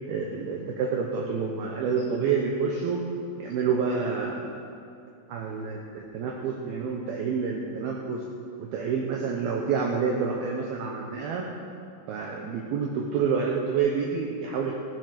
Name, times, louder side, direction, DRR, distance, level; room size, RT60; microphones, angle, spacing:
voice 1, 0.1-3.0 3.4-4.7 5.3-8.2 8.6-11.5 12.1-14.7, right 5 dB, 75° right, 0 dB, 2.3 m, -28 dB
14.5 x 13.5 x 5.1 m, 2.5 s
omnidirectional pair, 5.6 m